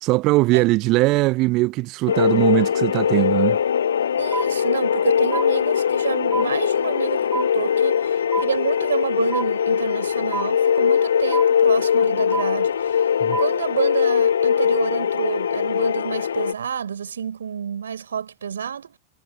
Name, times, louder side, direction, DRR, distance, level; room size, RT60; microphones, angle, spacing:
voice 1, 0.0-3.6 13.2-13.4, right 21 dB, 40° right, 0.8 m, -20 dB
sound 1, 2.1-16.5, left 8 dB, 65° left, 0.4 m, -21 dB
voice 2, 4.2-13.0 13.4-19.0, right 7 dB, 70° right, 5.3 m, -28 dB
sound 2, 4.3-5.0 5.3-6.1 6.3-7.1 7.3-8.1 8.3-9.1 9.3-10.1 10.3-11.1 11.3-12.1 12.3-13.1 13.3-14.1, right 5 dB, 15° right, 1.3 m, -31 dB
figure-of-eight pair, 90°, 0 cm